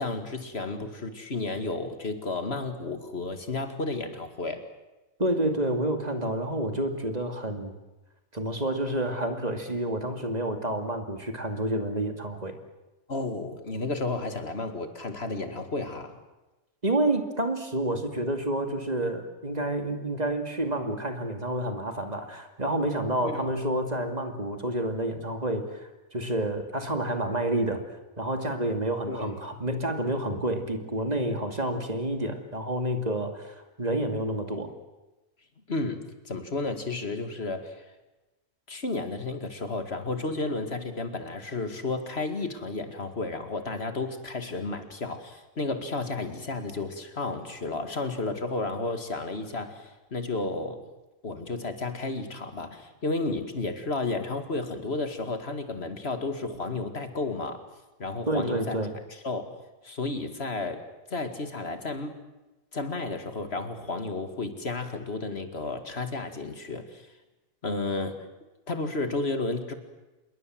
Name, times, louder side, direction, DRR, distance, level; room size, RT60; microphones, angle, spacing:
voice 1, 0.0-4.7 13.1-16.2 23.2-23.4 29.1-29.3 35.7-37.8 38.7-50.8 51.2-57.6 58.0-58.8 59.2-59.5 59.8-60.8 61.1-62.2 62.7-67.1 67.6-68.2 68.7-69.7, left 3 dB, 45° left, 8 dB, 2.4 m, -32 dB
voice 2, 5.2-7.7 8.3-12.6 16.8-27.8 28.2-34.7 58.3-58.9, right 1 dB, 30° right, 6 dB, 2.4 m, -29 dB
27.0 x 22.0 x 7.7 m, 1.1 s
omnidirectional pair, 1.4 m